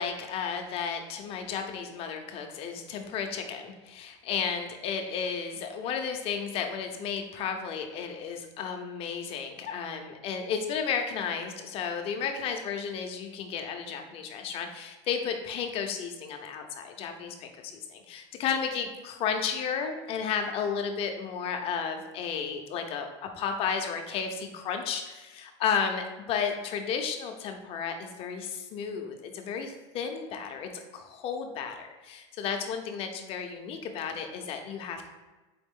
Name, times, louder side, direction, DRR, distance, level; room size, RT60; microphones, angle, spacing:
voice 1, 0.0-35.1, left 6 dB, 40° left, 5 dB, 0.5 m, -33 dB
4.2 x 3.5 x 3.6 m, 1.2 s
supercardioid pair, 155°, 15 cm